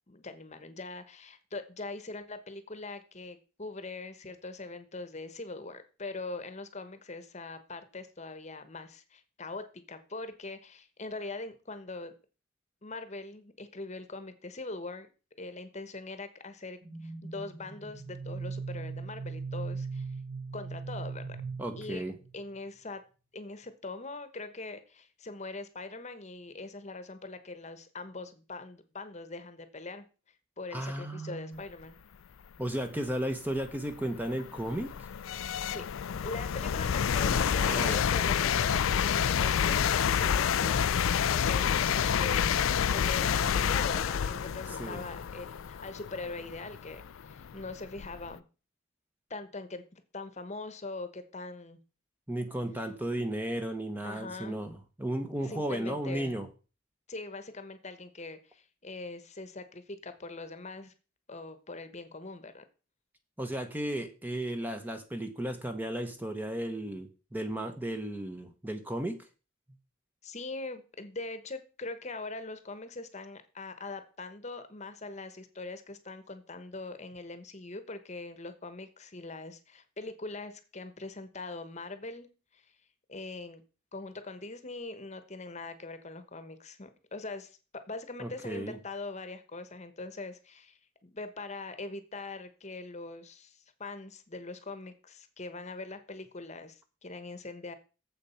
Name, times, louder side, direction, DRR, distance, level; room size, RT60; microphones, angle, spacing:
voice 1, 0.1-12.1 12.8-15.1 15.4-20.1 20.5-21.2 21.7-22.0 22.3-23.0 23.3-30.0 30.6-32.0 35.7-35.9 36.2-42.5 42.9-48.4 49.3-51.8 54.0-54.6 55.4-56.4 57.1-60.9 61.3-62.6 70.2-82.7 83.1-83.6 83.9-97.7, left 3 dB, 35° left, 10 dB, 1.1 m, -42 dB
sound 1, 16.8-22.4, right 4 dB, 40° right, 1.2 m, -39 dB
voice 2, 21.6-22.2 30.7-31.6 32.6-35.1 37.3-38.0 44.8-45.0 52.3-56.5 63.4-69.2 88.2-88.8, right 1 dB, 10° right, 7 dB, 0.9 m, -34 dB
sound 2, 32.9-33.0 33.6-48.3, left 8 dB, 80° left, 0.4 m, -29 dB
7.6 x 7.0 x 5.7 m, 0.34 s
head